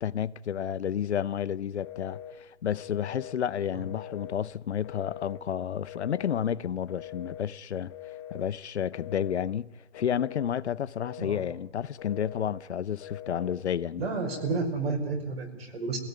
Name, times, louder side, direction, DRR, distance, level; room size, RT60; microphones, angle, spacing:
voice 1, 0.0-7.9 8.3-14.1, left 9 dB, 85° left, 0.8 m, -31 dB
Telephone, 1.8-2.4 2.8-3.4 3.8-4.4 4.8-5.4 5.9-6.4 6.9-7.5 7.9-8.5 8.9-9.5 9.9-10.5 11.0-11.5 12.0-12.6 13.0-13.6 14.0-14.6, left 11 dB, 25° left, 1.6 m, -43 dB
voice 2, 14.0-16.0, right 4 dB, 65° right, 5.7 m, -31 dB
22.5 x 17.0 x 9.5 m
hypercardioid pair, 165°, 33 cm